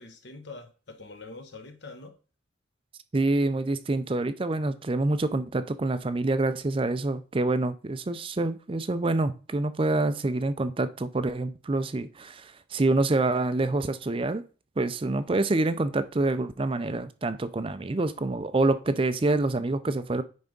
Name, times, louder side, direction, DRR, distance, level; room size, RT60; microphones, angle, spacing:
voice 1, 0.0-2.2, left 3 dB, 60° left, 1.2 m, -44 dB
voice 2, 3.1-14.4 14.8-20.2, right 2 dB, 25° right, 0.4 m, -26 dB
9.4 x 3.5 x 5.2 m
head